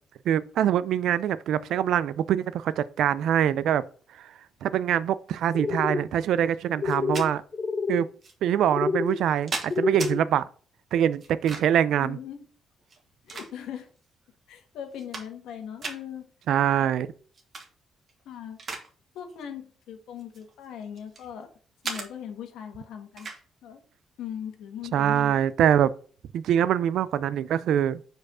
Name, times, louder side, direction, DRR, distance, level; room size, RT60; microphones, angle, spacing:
voice 1, 0.3-3.8 4.6-7.4 7.9-8.1 8.4-10.4 10.9-12.2 16.5-17.1 24.9-25.9 26.3-28.0, right 10 dB, 75° right, 0.4 m, -24 dB
sound 1, 5.5-6.0 6.8-7.3 7.5-8.0 8.7-9.2 9.7-10.2, left 5 dB, 35° left, 0.5 m, -28 dB
sound 2, 6.8-7.3 8.2-8.3 9.1-10.1 11.2-11.8 12.8-13.9 14.4-14.5 14.9-15.5 15.8-16.0 17.3-17.7 18.1-18.9 19.2-19.4 20.2-21.3 21.8-22.1 23.2-23.4, right 4 dB, 45° right, 1.7 m, -36 dB
voice 2, 12.0-12.4 13.2-13.9 14.5-16.3 16.8-16.9 18.2-18.6 19.1-21.5 21.8-23.8 24.2-25.4, left 9 dB, 85° left, 1.4 m, -39 dB
4.9 x 4.6 x 6.0 m
cardioid pair, 90°, 0 cm